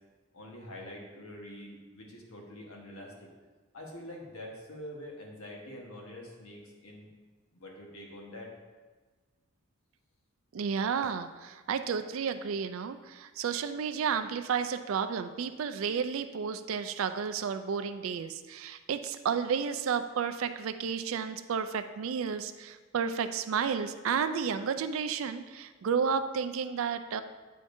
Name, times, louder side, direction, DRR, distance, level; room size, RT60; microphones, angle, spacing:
voice 1, 0.3-3.3 3.7-7.1 7.5-8.6, left 1 dB, 80° left, -1 dB, 1.3 m, -45 dB
voice 2, 10.5-27.2, right 6 dB, 70° right, 10 dB, 0.4 m, -32 dB
8.5 x 5.0 x 2.6 m, 1.3 s
head